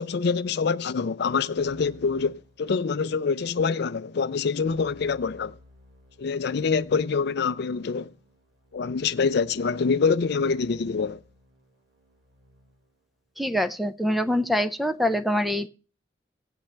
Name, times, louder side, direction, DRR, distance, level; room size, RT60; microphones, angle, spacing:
voice 1, 0.0-5.6 6.2-8.1 8.7-11.2, left 5 dB, 60° left, 0.4 m, -25 dB
Keyboard (musical), 1.6-3.2 4.6-13.0, left 1 dB, 70° right, 2.5 m, -57 dB
voice 2, 13.4-15.7, equal, ahead, 0.4 m, -25 dB
16.0 x 8.6 x 3.3 m
head